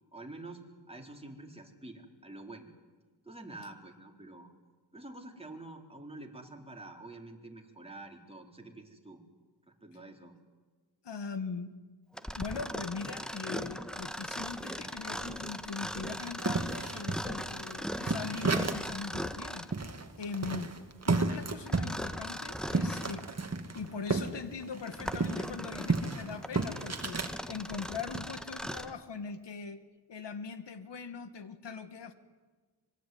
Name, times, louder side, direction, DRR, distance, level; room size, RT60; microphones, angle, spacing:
voice 1, 0.1-0.6 0.9-2.7 3.2-4.5 4.9-9.2 9.7-10.3, right 2 dB, 15° right, 1 dB, 4.5 m, -47 dB
voice 2, 11.0-11.7 12.4-19.7 20.2-20.7 21.1-23.2 23.7-29.8 30.1-32.1, left 5 dB, 85° left, 10 dB, 2.0 m, -41 dB
Mechanisms, 12.1-19.8 21.7-23.3 23.8-23.9 24.6-29.0, equal, ahead, 1.5 m, -39 dB
sound 1, 16.2-19.0 19.3-19.4 19.7-24.3 24.6-27.3 27.8-28.2, right 3 dB, 40° right, 2.3 m, -32 dB
25.0 x 22.5 x 9.6 m, 1.3 s
wide cardioid pair, 70°, 41 cm